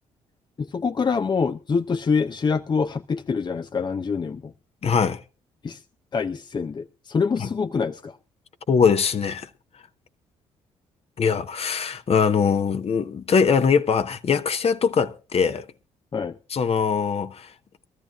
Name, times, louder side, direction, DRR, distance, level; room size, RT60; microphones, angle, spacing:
voice 1, 0.6-4.5 5.6-5.8 6.1-8.2 16.1-16.4, left 5 dB, 35° left, 0.6 m, -25 dB
voice 2, 4.8-5.2 7.4-7.5 8.7-9.5 11.2-15.7 16.5-17.5, left 6 dB, 50° left, 1.0 m, -22 dB
23.5 x 13.5 x 2.5 m
supercardioid pair, 55°, 14 cm